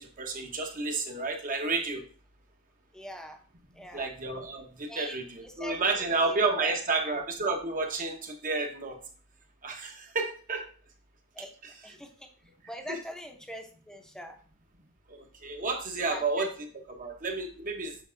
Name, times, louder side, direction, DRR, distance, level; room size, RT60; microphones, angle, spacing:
voice 1, 0.0-2.1 3.9-9.0 9.6-10.6 12.9-13.0 15.1-16.5 16.9-18.0, right 3 dB, 40° right, 3 dB, 1.1 m, -31 dB
voice 2, 2.9-3.4 3.7-4.1 4.9-5.2 5.4-6.8 11.3-11.5 11.8-12.3 12.7-14.4 16.1-16.5, equal, 5° left, 4 dB, 0.8 m, -43 dB
8.0 x 5.3 x 2.6 m, 0.41 s
head